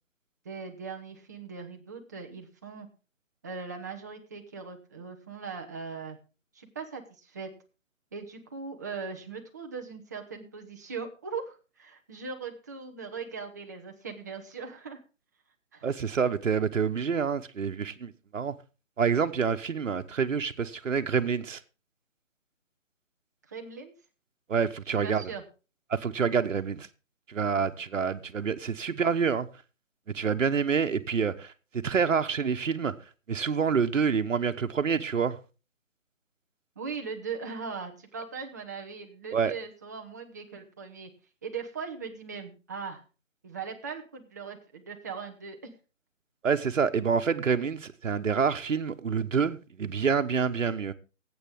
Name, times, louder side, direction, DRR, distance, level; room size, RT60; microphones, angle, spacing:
voice 1, 0.4-2.9 3.4-6.2 6.5-7.5 8.1-15.0 15.7-15.9 23.5-23.9 25.0-25.4 36.8-41.1 41.4-43.0 43.4-45.7, right 5 dB, 15° right, 0.7 m, -39 dB
voice 2, 15.8-18.6 19.0-21.6 24.5-25.3 25.9-26.9 27.3-29.5 30.1-32.9 33.3-35.4 39.3-39.5 46.4-50.9, right 6 dB, 70° right, 1.1 m, -27 dB
17.5 x 8.2 x 3.6 m
figure-of-eight pair, 155°, 39 cm